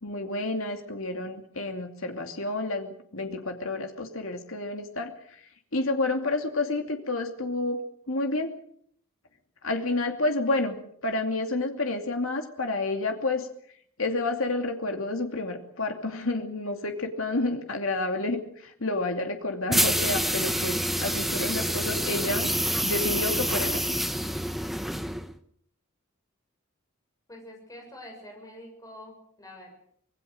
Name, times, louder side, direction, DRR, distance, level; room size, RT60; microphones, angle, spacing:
voice 1, 0.0-5.4 5.7-8.6 9.6-13.5 14.0-22.5 22.8-24.0, left 2 dB, 75° left, 4 dB, 2.6 m, -30 dB
sound 1, 19.7-25.3, equal, ahead, 1.0 m, -27 dB
voice 2, 27.3-29.7, left 1 dB, 15° left, 1 dB, 7.1 m, -46 dB
25.5 x 20.0 x 6.4 m, 0.66 s
head